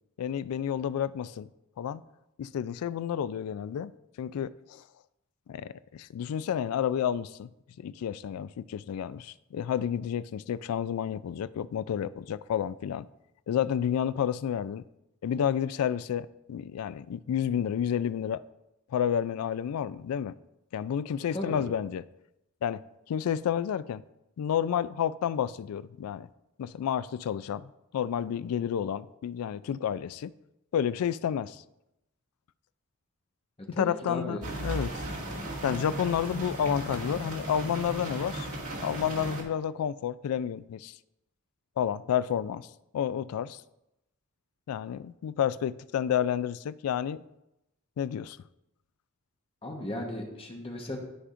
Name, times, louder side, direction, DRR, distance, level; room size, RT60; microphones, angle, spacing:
voice 1, 0.2-1.5 1.8-2.0 2.4-3.9 4.2-4.8 5.5-7.5 7.8-13.1 13.5-14.8 15.2-18.4 18.9-20.3 20.7-22.0 22.6-22.8 23.1-24.0 24.4-26.3 26.6-30.3 30.7-31.6 33.8-35.0 35.6-38.5 38.8-41.0 41.8-42.7 42.9-43.6 44.7-47.2 48.0-48.4, left 9 dB, 80° left, 0.3 m, -30 dB
voice 2, 33.7-34.4 49.6-51.0, left 1 dB, 25° left, 1.2 m, -35 dB
sound 1, 34.4-39.4, right 1 dB, 85° right, 2.1 m, -36 dB
12.5 x 4.9 x 2.5 m
head